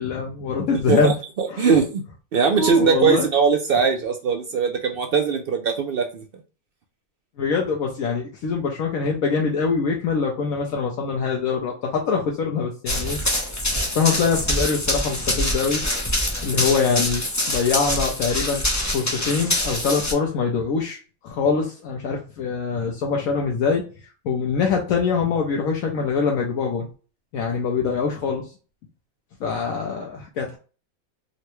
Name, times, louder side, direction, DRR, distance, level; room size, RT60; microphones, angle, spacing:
voice 1, 0.0-1.1 1.5-1.8 2.6-3.3 7.4-13.2 13.9-15.8 16.4-18.6 18.9-23.8 24.2-26.9 27.3-28.5 29.4-30.6, left 5 dB, 75° left, 0 dB, 1.1 m, -24 dB
voice 2, 0.9-2.0 2.3-6.2, right 5 dB, 70° right, 4 dB, 0.5 m, -21 dB
Run, 12.9-20.1, left 1 dB, 25° left, 0.3 m, -25 dB
3.8 x 2.2 x 2.9 m, 0.35 s
omnidirectional pair, 1.5 m